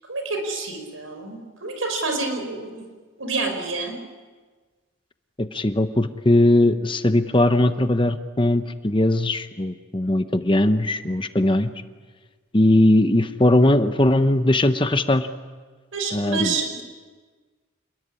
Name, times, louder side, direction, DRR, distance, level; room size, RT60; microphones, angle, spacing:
voice 1, 0.1-2.8 3.2-4.0 15.9-16.8, right 3 dB, 85° right, 5 dB, 5.4 m, -28 dB
voice 2, 5.4-11.7 12.5-15.3 16.1-16.5, left 1 dB, 25° left, 9 dB, 0.9 m, -19 dB
28.5 x 21.0 x 9.9 m, 1.4 s
head